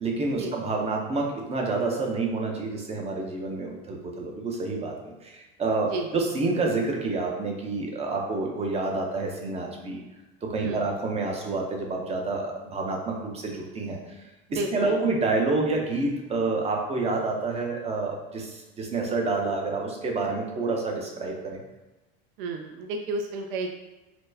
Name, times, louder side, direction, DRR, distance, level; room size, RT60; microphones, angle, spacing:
voice 1, 0.0-10.0 10.4-14.0 14.5-21.6, right 3 dB, 20° right, 0 dB, 0.6 m, -28 dB
voice 2, 14.6-14.9 22.4-23.7, right 3 dB, 65° right, 3 dB, 0.5 m, -31 dB
4.3 x 2.1 x 2.6 m, 1.1 s
supercardioid pair, 110°, 29 cm